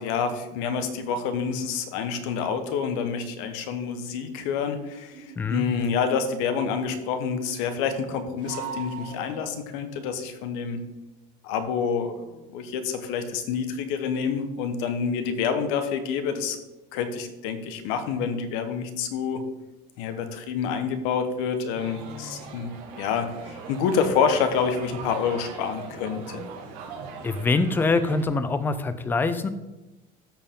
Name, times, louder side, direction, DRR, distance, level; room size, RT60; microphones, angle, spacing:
voice 1, 0.0-10.8 11.4-16.6 16.9-19.4 20.0-22.7 23.0-26.4, left 6 dB, 75° left, 8 dB, 1.1 m, -28 dB
sound 1, 5.1-6.2 8.4-9.8, right 7 dB, 40° right, 2.9 m, -40 dB
sound 2, 21.7-28.3, right 4 dB, 80° right, 1.8 m, -40 dB
voice 2, 27.2-29.5, left 3 dB, 10° left, 11 dB, 0.3 m, -24 dB
13.0 x 4.5 x 3.7 m, 1.0 s
cardioid pair, 175°, 21 cm